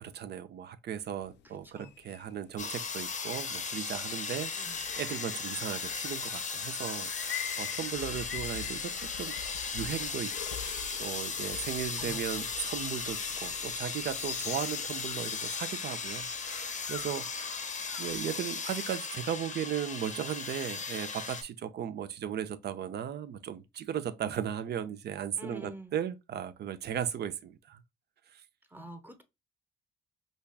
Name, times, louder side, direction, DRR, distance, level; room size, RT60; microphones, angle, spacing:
voice 1, 0.0-10.6 11.0-17.6 18.0-27.8 28.3-28.4, right 9 dB, 55° right, 0.5 m, -37 dB
sound 1, 1.2-18.2, left 10 dB, 60° left, 0.4 m, -45 dB
voice 2, 1.4-1.9 4.5-4.8 12.0-12.5 25.4-26.0 28.7-29.2, right 1 dB, 10° right, 0.8 m, -46 dB
sound 2, 2.6-21.4, left 5 dB, 40° left, 0.7 m, -37 dB
5.2 x 2.3 x 2.3 m
cardioid pair, 90°, 20 cm